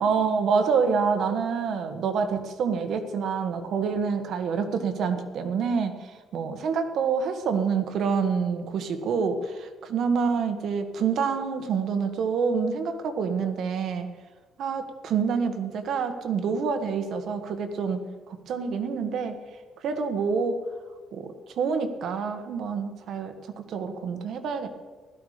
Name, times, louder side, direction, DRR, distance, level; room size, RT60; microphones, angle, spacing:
voice 1, 0.0-14.1 14.6-18.0 18.3-19.4 19.8-20.6 21.1-24.7, right 5 dB, 60° right, 7 dB, 1.6 m, -27 dB
16.5 x 13.5 x 5.1 m, 1.4 s
cardioid pair, 145°, 0 cm